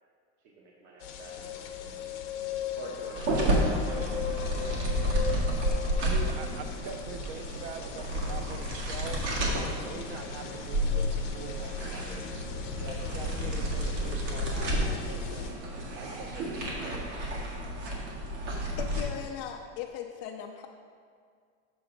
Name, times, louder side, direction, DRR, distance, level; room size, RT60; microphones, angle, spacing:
voice 1, 0.4-1.4 2.8-4.2 4.8-5.6, right 1 dB, 75° right, -4 dB, 1.2 m, -48 dB
sound 1, 1.0-15.5, left 7 dB, 85° left, 0.8 m, -39 dB
sound 2, 3.2-19.0, equal, 90° right, 1.9 m, -31 dB
voice 2, 6.0-12.5 12.8-17.0, right 6 dB, 45° right, 7 dB, 0.6 m, -43 dB
voice 3, 18.8-20.7, left 7 dB, 60° left, 2 dB, 0.6 m, -38 dB
7.6 x 5.7 x 3.9 m, 2.1 s
supercardioid pair, 130°, 35 cm